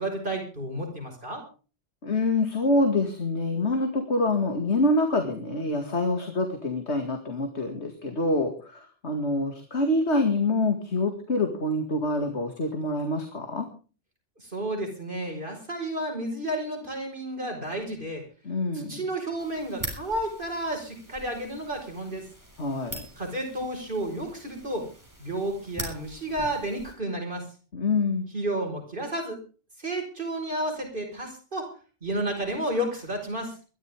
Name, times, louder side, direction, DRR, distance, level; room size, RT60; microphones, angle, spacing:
voice 1, 0.0-1.4 14.4-18.2 18.7-22.3 23.2-24.9 25.2-27.5 28.3-29.4 29.8-31.7 32.0-33.5, right 1 dB, 45° right, 3 dB, 5.4 m, -31 dB
voice 2, 2.0-13.7 18.4-19.0 22.6-23.0 27.7-28.3, left 2 dB, 70° left, 5 dB, 2.5 m, -26 dB
sound 1, 19.4-26.9, right 1 dB, 15° right, 6.8 m, -42 dB
22.0 x 14.0 x 3.6 m, 0.36 s
omnidirectional pair, 1.2 m